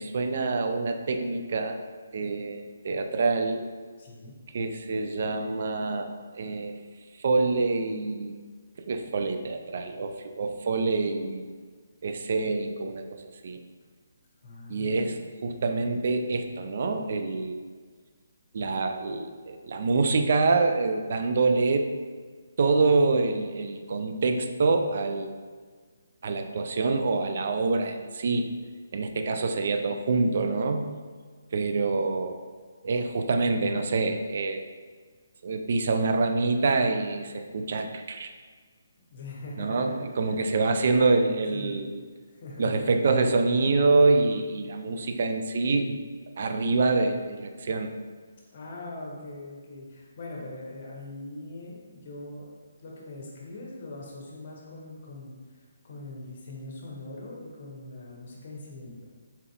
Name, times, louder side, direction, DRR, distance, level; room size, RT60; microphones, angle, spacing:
voice 1, 0.0-1.8 2.1-3.7 4.5-6.7 7.2-8.3 8.9-11.5 12.0-13.6 14.7-17.7 18.5-21.9 22.6-25.3 26.2-28.5 28.9-30.9 31.5-32.4 32.8-34.7 35.4-38.3 39.6-42.0 42.6-46.0 46.4-47.9, right 3 dB, 50° right, 6 dB, 0.3 m, -26 dB
voice 2, 4.0-4.3 14.4-15.1 31.7-32.0 39.1-40.4 41.5-41.9 42.3-42.9 48.5-52.5 52.8-55.4 55.8-59.0, left 2 dB, 45° left, -3 dB, 0.9 m, -41 dB
4.1 x 3.8 x 2.4 m, 1.5 s
figure-of-eight pair, 140°, 0 cm